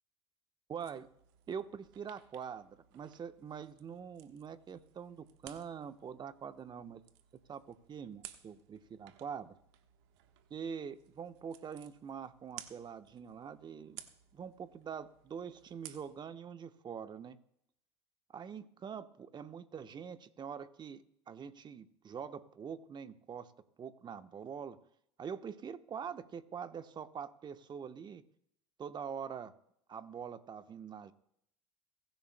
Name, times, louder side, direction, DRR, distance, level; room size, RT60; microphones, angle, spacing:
voice 1, 0.7-1.1 1.5-7.0 7.5-9.5 10.5-14.0 14.3-17.4 18.3-23.5 23.8-24.8 25.2-28.2 28.8-29.5 29.9-31.1, right 7 dB, 30° right, 10 dB, 1.1 m, -44 dB
sound 1, 0.8-16.2, right 12 dB, 65° right, 1.3 m, -57 dB
23.0 x 14.5 x 2.2 m, 0.72 s
hypercardioid pair, 85°, 15 cm